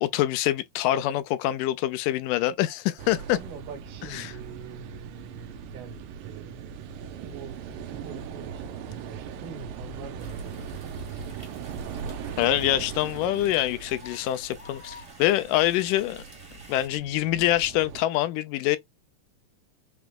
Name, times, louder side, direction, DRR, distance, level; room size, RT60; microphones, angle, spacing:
voice 1, 0.0-3.4 4.1-4.3 12.4-16.2 16.7-18.8, left 14 dB, 80° left, 2.1 m, -25 dB
sound 1, 3.0-18.0, right 7 dB, 85° right, 2.5 m, -40 dB
voice 2, 3.3-12.1, right 5 dB, 65° right, 2.9 m, -45 dB
sound 2, 10.2-16.9, equal, 20° right, 1.2 m, -50 dB
6.1 x 3.4 x 2.3 m
omnidirectional pair, 3.9 m